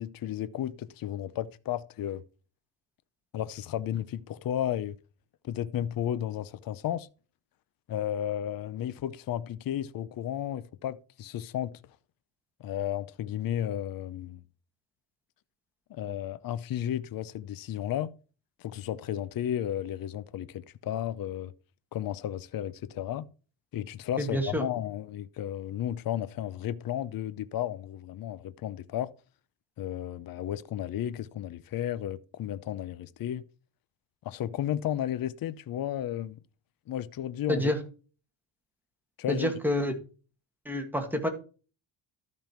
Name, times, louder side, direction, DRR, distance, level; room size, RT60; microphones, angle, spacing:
voice 1, 0.0-2.2 3.3-5.0 5.4-7.1 7.9-11.8 12.6-14.4 15.9-18.1 18.6-21.5 21.9-23.2 23.7-29.1 29.8-33.4 34.2-36.4 36.9-37.7 39.2-39.5, left 11 dB, 45° left, 0.6 m, -33 dB
voice 2, 24.2-24.6 37.5-37.8 39.3-39.9 40.7-41.3, left 1 dB, 5° right, 1.9 m, -28 dB
12.5 x 5.5 x 4.5 m
cardioid pair, 110°, 47 cm